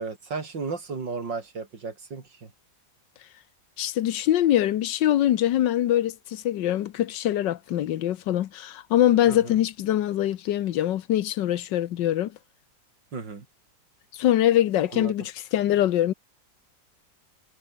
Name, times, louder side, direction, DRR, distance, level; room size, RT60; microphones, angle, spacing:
voice 1, 0.0-2.5 9.3-9.6 13.1-13.5 14.9-15.1, right 4 dB, 75° right, 4.0 m, -34 dB
voice 2, 3.8-12.3 14.1-16.1, left 12 dB, 80° left, 1.5 m, -23 dB
omnidirectional pair, 2.0 m